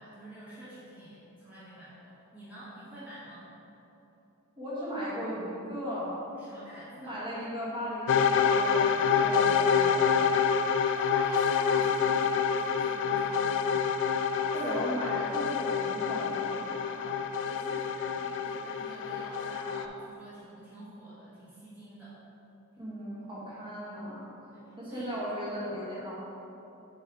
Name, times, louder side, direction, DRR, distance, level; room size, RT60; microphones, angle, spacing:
voice 1, 0.0-3.5 6.4-7.2 9.0-9.3 10.7-13.9 14.3-14.7 16.5-22.2 23.6-23.7 24.5-25.1, equal, 10° right, -12 dB, 1.3 m, -48 dB
voice 2, 4.6-6.1 6.9-10.3 14.5-16.6 22.8-24.2 24.8-26.2, equal, 25° right, -9 dB, 1.5 m, -36 dB
sound 1, 8.1-19.9, left 6 dB, 55° left, 0.3 m, -27 dB
7.4 x 3.3 x 4.7 m, 3.0 s
head